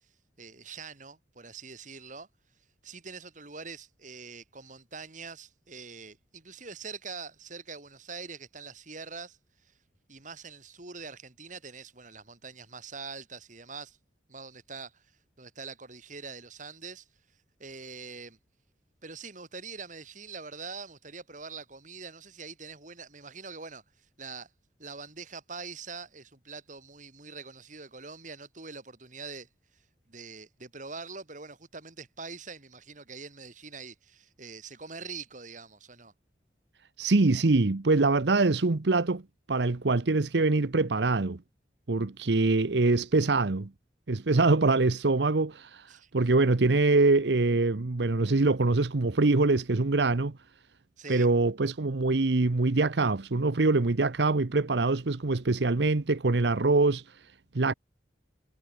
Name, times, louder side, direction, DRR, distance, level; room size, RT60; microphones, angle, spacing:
voice 1, 0.4-2.3 2.8-9.7 10.1-14.0 14.3-15.1 15.4-17.1 17.6-18.4 19.0-24.5 24.8-29.8 30.1-36.1 45.9-46.2 51.0-51.3, right 4 dB, 45° right, 3.2 m, -44 dB
voice 2, 37.0-39.2 39.5-41.4 41.9-43.7 44.1-50.3 51.1-57.7, right 3 dB, 75° right, 0.9 m, -24 dB
head